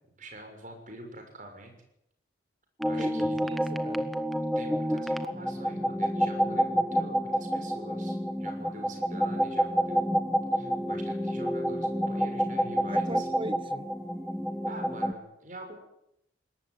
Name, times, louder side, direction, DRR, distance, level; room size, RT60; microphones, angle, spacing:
voice 1, 0.1-1.7 2.8-3.4 4.5-10.0 10.5-13.3 14.6-15.7, right 1 dB, 45° right, 4 dB, 6.6 m, -45 dB
sound 1, 2.8-15.1, equal, ahead, 1.3 m, -29 dB
voice 2, 3.0-4.1 12.8-13.9, right 1 dB, 30° right, 14 dB, 1.1 m, -39 dB
22.0 x 19.0 x 9.6 m, 0.79 s
head